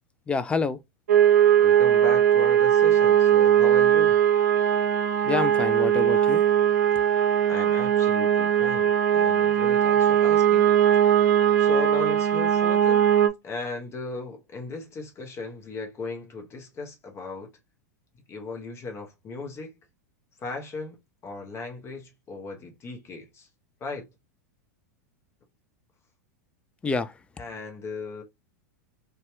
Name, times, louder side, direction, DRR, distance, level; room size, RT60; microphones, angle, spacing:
voice 1, 0.3-0.8 5.2-6.4 26.8-27.2, left 4 dB, 15° left, 0.3 m, -27 dB
sound 1, 1.1-13.3, right 10 dB, 75° right, 0.5 m, -20 dB
voice 2, 1.6-4.2 7.5-10.7 11.0-13.0 13.4-17.5 18.3-19.8 20.4-21.0 21.2-23.5 23.8-24.1 27.4-28.2, left 3 dB, 30° left, 0.8 m, -37 dB
2.8 x 2.3 x 3.0 m
hypercardioid pair, 100°, 9 cm